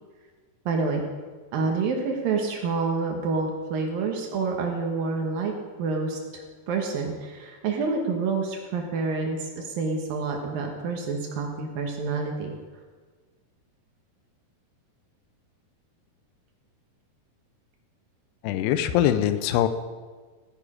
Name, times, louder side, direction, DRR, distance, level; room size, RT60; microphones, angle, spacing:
voice 1, 0.7-1.0 1.5-5.5 5.8-6.2 6.7-12.5, right 4 dB, 70° right, 2 dB, 2.7 m, -28 dB
voice 2, 18.4-19.7, left 11 dB, 90° left, 10 dB, 2.8 m, -22 dB
14.5 x 8.8 x 5.0 m, 1.4 s
omnidirectional pair, 4.7 m